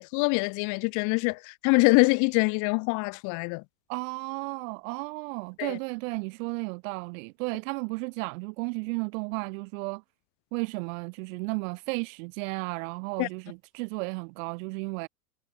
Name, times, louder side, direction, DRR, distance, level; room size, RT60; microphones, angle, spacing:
voice 1, 0.0-3.6 5.6-5.8 13.2-13.3, left 31 dB, 45° left, 0.5 m, -24 dB
voice 2, 3.9-10.0 10.5-15.1, right 30 dB, 60° right, 1.3 m, -33 dB
hypercardioid pair, 95°, 45 cm